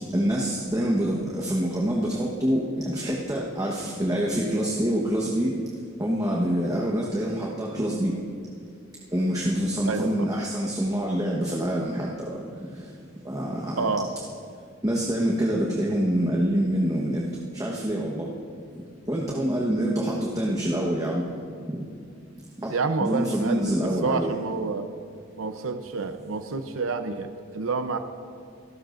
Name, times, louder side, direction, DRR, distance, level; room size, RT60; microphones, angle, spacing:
voice 1, 0.1-5.5 6.0-8.1 9.1-12.1 13.2-13.9 14.8-17.3 17.5-18.3 19.1-21.2 21.7-21.8 22.6-22.7 23.0-24.3, right 1 dB, 20° right, -3 dB, 1.2 m, -26 dB
voice 2, 9.9-10.3 13.8-14.1 22.7-24.9 25.4-28.0, right 4 dB, 85° right, 8 dB, 0.8 m, -28 dB
27.5 x 13.5 x 2.6 m, 2.3 s
head